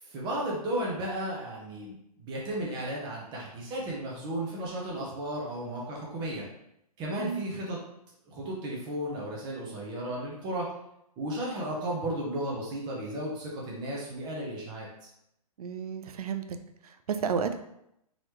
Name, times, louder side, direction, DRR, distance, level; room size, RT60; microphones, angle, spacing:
voice 1, 0.0-6.4 7.0-7.8 8.3-10.7 11.2-15.1, right 1 dB, 20° right, -3 dB, 0.8 m, -34 dB
voice 2, 15.6-16.6 16.8-17.6, right 6 dB, 70° right, 8 dB, 0.5 m, -32 dB
3.9 x 3.1 x 3.2 m, 0.79 s
hypercardioid pair, 145°, 20 cm